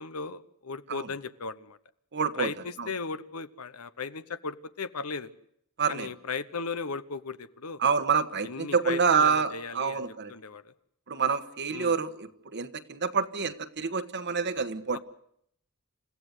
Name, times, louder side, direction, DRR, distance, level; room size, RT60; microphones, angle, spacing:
voice 1, 0.0-1.8 2.3-5.3 5.9-7.8 8.4-10.7 11.7-11.9 14.9-15.0, left 4 dB, 75° left, 13 dB, 1.0 m, -36 dB
voice 2, 2.1-2.5 2.8-2.9 5.8-6.1 7.8-10.3 11.1-15.0, right 5 dB, 50° right, 10 dB, 1.3 m, -27 dB
28.5 x 15.5 x 8.2 m, 0.71 s
head